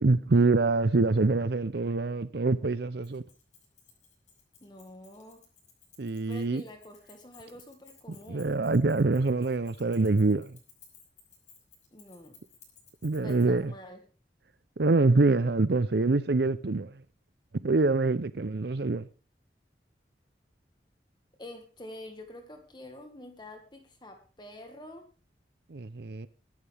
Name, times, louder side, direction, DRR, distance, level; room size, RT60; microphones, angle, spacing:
voice 1, 0.0-3.2 6.0-6.6 8.3-10.5 13.0-13.7 14.8-16.9 17.6-19.1 25.7-26.3, right 3 dB, 65° right, 0.6 m, -25 dB
Keys jangling, 3.0-13.7, left 7 dB, 40° left, 5.7 m, -58 dB
voice 2, 4.6-5.4 6.3-8.6 11.9-12.4 13.2-14.0 21.4-25.1, left 1 dB, 25° left, 1.7 m, -47 dB
23.0 x 11.0 x 3.5 m
head